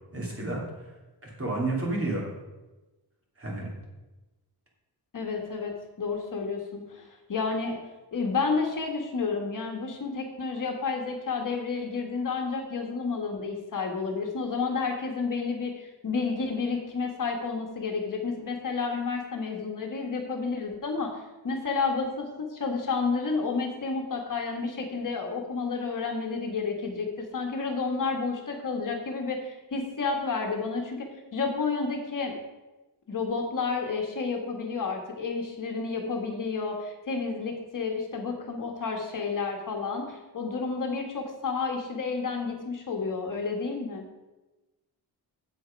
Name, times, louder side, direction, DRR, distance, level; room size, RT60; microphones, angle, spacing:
voice 1, 0.1-0.6 1.2-2.3 3.4-3.7, right 2 dB, 30° right, -3 dB, 2.8 m, -30 dB
voice 2, 5.1-5.7 6.0-7.8 8.1-32.3 33.1-44.0, left 4 dB, 50° left, 2 dB, 1.4 m, -30 dB
7.9 x 7.9 x 5.1 m, 1.1 s
wide cardioid pair, 145°, 42 cm